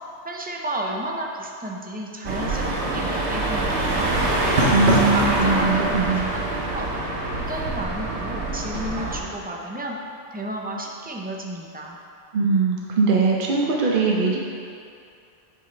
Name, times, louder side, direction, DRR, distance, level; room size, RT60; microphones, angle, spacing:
voice 1, 0.2-4.5 5.1-5.7 6.3-6.4 6.7-6.9 7.3-10.0 10.3-12.0, right 1 dB, 15° right, -1 dB, 0.3 m, -32 dB
sound 1, 2.2-9.2, right 2 dB, 85° right, 1.2 m, -24 dB
voice 2, 4.7-6.3 12.3-14.4, right 4 dB, 55° right, -2 dB, 0.8 m, -21 dB
8.0 x 5.4 x 3.3 m, 2.5 s
omnidirectional pair, 1.1 m